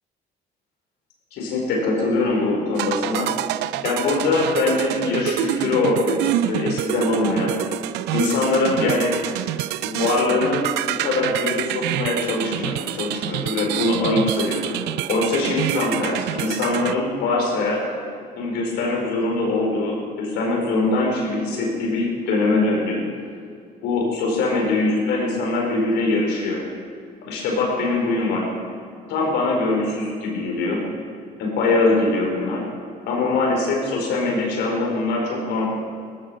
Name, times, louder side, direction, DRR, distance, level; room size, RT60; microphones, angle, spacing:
voice 1, 1.3-3.3 3.8-7.5 8.1-9.2 9.8-14.7 15.1-17.8 18.4-23.0 23.8-26.6 27.2-28.5 29.1-30.8 31.4-32.6 33.1-35.7, left 2 dB, 85° left, -1 dB, 4.6 m, -22 dB
sound 1, 2.7-16.9, right 14 dB, 85° right, 0.5 m, -27 dB
18.5 x 14.5 x 5.1 m, 2.2 s
cardioid pair, 110°, 17 cm